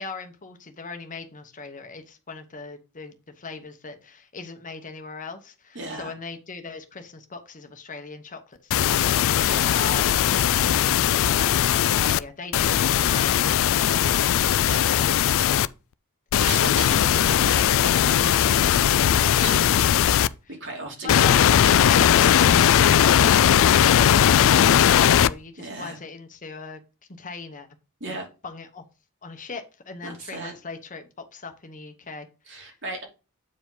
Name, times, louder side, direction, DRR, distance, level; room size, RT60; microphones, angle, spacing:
voice 1, 0.0-9.2 9.7-14.5 17.0-17.1 20.4-20.6 21.0-21.4 23.2-26.8 27.1-27.7 28.1-28.2 28.4-28.8 29.2-32.3, left 4 dB, 35° left, 7 dB, 1.0 m, -39 dB
voice 2, 5.7-6.1 9.5-9.7 14.7-15.2 16.4-19.7 19.9-22.6 25.6-26.0 28.0-28.3 30.0-30.5 32.5-33.0, right 2 dB, 55° right, 0 dB, 2.8 m, -36 dB
sound 1, 8.7-12.2 12.5-15.7 16.3-20.3 21.1-25.3, left 10 dB, 65° left, 0.4 m, -19 dB
8.4 x 4.9 x 3.8 m, 0.32 s
head